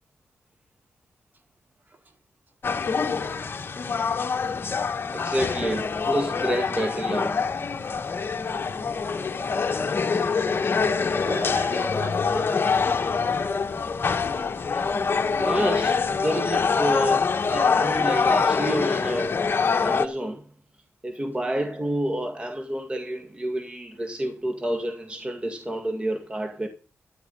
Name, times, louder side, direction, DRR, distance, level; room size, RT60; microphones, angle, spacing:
sound 1, 2.6-20.1, left 5 dB, 50° left, 1.5 m, -25 dB
voice 1, 5.1-7.5 14.7-14.8 15.3-19.4 19.8-20.4 21.0-26.7, right 1 dB, 20° right, 1.9 m, -29 dB
voice 2, 10.0-12.5, right 3 dB, 40° right, 3.0 m, -39 dB
13.0 x 10.5 x 5.5 m
cardioid pair, 95°, 5 cm